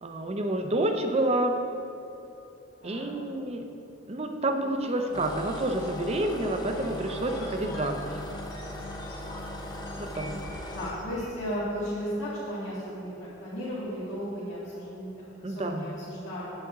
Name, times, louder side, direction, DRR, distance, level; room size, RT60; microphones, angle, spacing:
voice 1, 0.0-1.6 2.8-3.6 4.1-8.2 10.0-10.4 15.4-15.9, right 1 dB, 30° right, 5 dB, 0.5 m, -29 dB
sound 1, 4.4-11.5, equal, 55° left, 1.8 m, -45 dB
sound 2, 5.1-11.0, left 1 dB, 20° left, 0.7 m, -39 dB
voice 2, 10.7-16.5, equal, 70° left, -11 dB, 1.9 m, -35 dB
8.6 x 7.7 x 3.6 m, 2.9 s
head